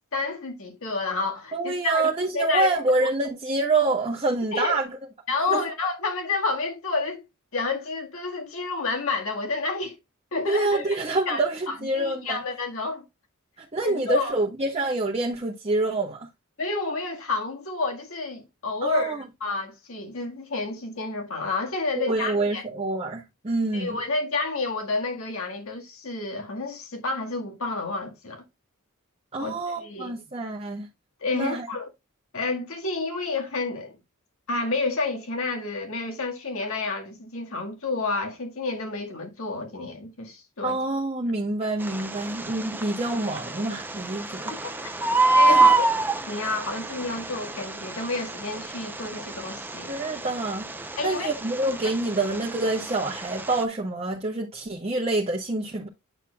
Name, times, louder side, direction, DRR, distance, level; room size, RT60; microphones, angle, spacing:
voice 1, 0.1-2.0 2.3-2.7 3.0-3.1 4.5-4.8 5.3-7.2 7.5-10.0 10.3-11.0 11.3-11.4 11.7-13.0 13.8-14.4 16.6-22.6 23.7-28.4 29.4-30.1 31.2-31.9 32.3-34.0 34.5-40.8 45.3-45.9 46.3-49.9 51.0-51.3, left 3 dB, 70° left, 1.8 m, -29 dB
voice 2, 1.5-4.9 5.5-5.6 10.5-12.4 13.6-16.3 18.8-19.2 21.9-24.0 29.3-30.9 31.3-31.7 40.6-44.6 45.5-45.7 49.9-50.7 51.0-55.9, right 2 dB, 30° right, 1.1 m, -26 dB
Bird, 41.8-53.6, right 3 dB, 10° right, 0.6 m, -27 dB
9.0 x 6.7 x 2.3 m
head